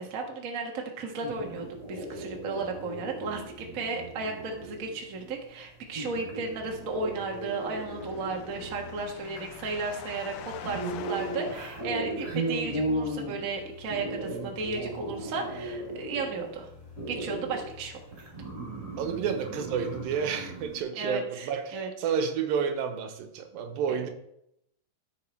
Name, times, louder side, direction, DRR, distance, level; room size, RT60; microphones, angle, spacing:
voice 1, 0.0-16.7 17.1-18.3 20.9-21.9 23.9-24.0, right 4 dB, 50° right, 1 dB, 0.9 m, -34 dB
sound 1, 1.2-20.8, right 1 dB, 20° right, 2.9 m, -37 dB
sound 2, 5.8-20.5, left 4 dB, 50° left, 2.8 m, -52 dB
sound 3, 6.4-12.7, left 10 dB, 75° left, 1.9 m, -46 dB
voice 2, 19.0-24.1, right 7 dB, 90° right, 7 dB, 2.7 m, -30 dB
13.0 x 6.3 x 4.4 m, 0.78 s
omnidirectional pair, 4.0 m